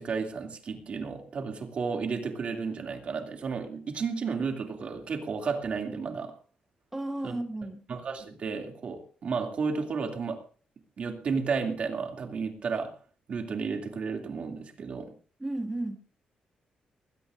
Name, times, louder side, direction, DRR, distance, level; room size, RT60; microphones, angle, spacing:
voice 1, 0.0-6.3 7.2-7.4 7.9-10.4 11.0-13.0 13.3-15.1, right 5 dB, 50° right, 4 dB, 2.6 m, -32 dB
voice 2, 6.9-7.8 15.4-16.0, right 1 dB, 10° right, 4 dB, 1.3 m, -33 dB
21.0 x 16.0 x 2.6 m, 0.40 s
wide cardioid pair, 160°, 3 cm